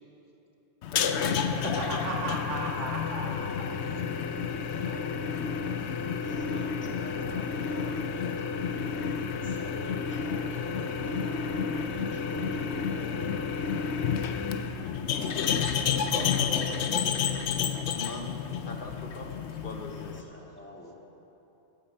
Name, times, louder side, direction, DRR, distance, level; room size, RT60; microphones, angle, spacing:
sound 1, 0.8-20.2, left 6 dB, 75° left, 0.9 m, -30 dB
voice 1, 1.5-3.5 4.8-5.1 15.9-17.8, right 2 dB, 85° right, -1 dB, 1.9 m, -37 dB
voice 2, 6.1-8.5 8.8-13.5 20.0-21.0, equal, 10° left, -4 dB, 1.7 m, -46 dB
voice 3, 17.9-18.3 18.6-20.2, left 3 dB, 50° left, 3 dB, 1.0 m, -41 dB
16.0 x 9.7 x 4.5 m, 3.0 s
omnidirectional pair, 1.2 m